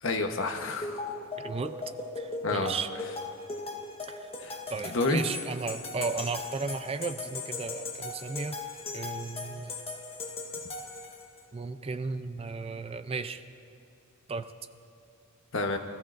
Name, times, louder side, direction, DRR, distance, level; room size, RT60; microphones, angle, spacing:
voice 1, 0.0-1.0 2.4-2.8 4.4-4.6 4.9-5.2 15.5-15.8, left 3 dB, 60° left, 5 dB, 1.1 m, -29 dB
sound 1, 0.8-11.4, left 3 dB, 30° left, 1.3 m, -38 dB
voice 2, 1.4-1.7 2.2-2.9 4.1-4.3 4.7-8.6 8.9-9.7 11.5-13.4 14.3-14.5, right 4 dB, 25° right, 10 dB, 0.4 m, -35 dB
25.0 x 14.5 x 2.6 m, 2.9 s
head